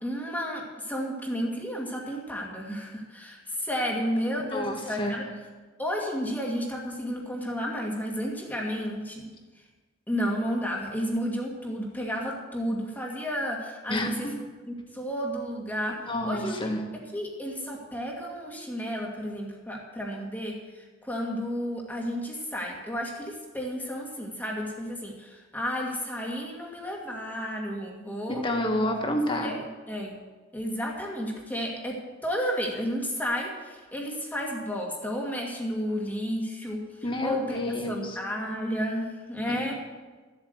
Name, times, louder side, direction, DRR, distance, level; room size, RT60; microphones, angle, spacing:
voice 1, 0.0-5.3 5.8-9.3 10.1-14.3 14.7-16.6 17.1-28.4 28.9-29.0 29.3-30.2 30.5-37.6 37.9-39.7, equal, 10° left, -1 dB, 2.0 m, -32 dB
voice 2, 4.5-5.1 13.9-14.3 16.1-16.8 28.3-29.5 37.0-38.2 39.5-39.7, left 1 dB, 25° left, 3 dB, 1.7 m, -29 dB
13.0 x 8.1 x 8.0 m, 1.3 s
head